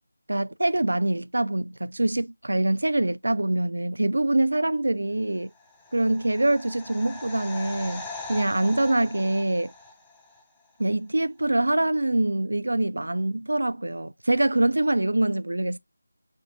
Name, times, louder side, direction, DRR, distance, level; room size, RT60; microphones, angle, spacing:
voice 1, 0.3-5.5 5.9-9.7 10.8-15.8, right 1 dB, 65° right, 0.3 m, -24 dB
sound 1, 5.5-10.4 10.7-10.8, left 3 dB, 5° left, 0.5 m, -41 dB
3.6 x 2.6 x 3.5 m
figure-of-eight pair, 160°, 0 cm